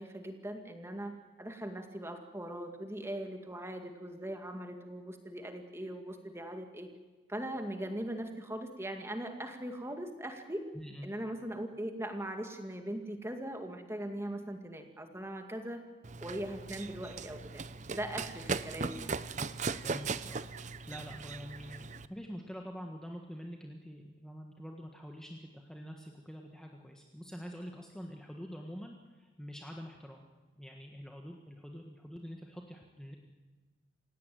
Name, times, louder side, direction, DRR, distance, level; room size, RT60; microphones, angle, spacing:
voice 1, 0.0-6.9 7.3-10.6 11.0-15.8 16.2-17.6 17.9-19.1, right 1 dB, 15° right, 5 dB, 2.2 m, -40 dB
voice 2, 10.7-11.1 19.8-30.2 30.6-33.2, equal, 5° left, 1 dB, 1.6 m, -46 dB
Run, 16.0-22.1, right 4 dB, 40° right, 0.7 m, -38 dB
27.5 x 17.0 x 9.3 m, 1.3 s
head